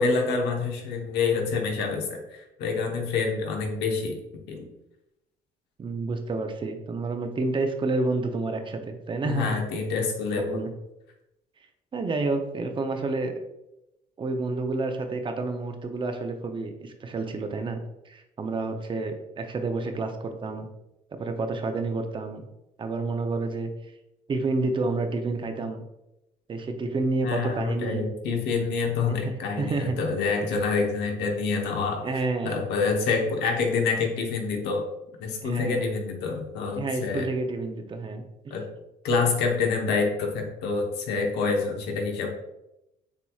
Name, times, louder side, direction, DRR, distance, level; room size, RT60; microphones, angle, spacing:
voice 1, 0.0-4.2 4.5-4.7 9.2-10.6 27.2-32.1 32.4-34.8 35.2-37.3 38.5-38.6 39.0-42.3, left 4 dB, 80° left, 2 dB, 1.0 m, -27 dB
voice 2, 5.8-9.6 10.4-10.7 11.9-13.3 14.2-20.7 21.2-22.5 22.8-23.7 24.3-25.8 26.5-28.0 29.1-29.9 32.0-32.6 35.4-35.9 36.8-38.2, right 3 dB, 30° right, 6 dB, 0.6 m, -29 dB
7.0 x 3.0 x 2.3 m, 0.89 s
cardioid pair, 110°, 17 cm